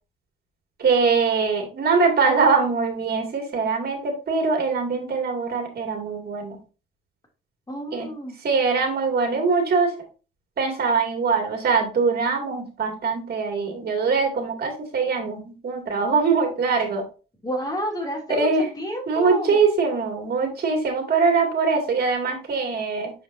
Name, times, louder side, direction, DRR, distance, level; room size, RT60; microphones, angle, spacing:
voice 1, 0.8-6.6 7.9-8.1 8.4-9.9 10.6-17.0 18.4-18.7 19.1-23.1, right 4 dB, 50° right, 2 dB, 2.4 m, -22 dB
voice 2, 7.7-8.3 17.4-19.6, equal, 20° left, 0 dB, 2.7 m, -30 dB
7.0 x 5.1 x 2.7 m, 0.33 s
cardioid pair, 90°, 20 cm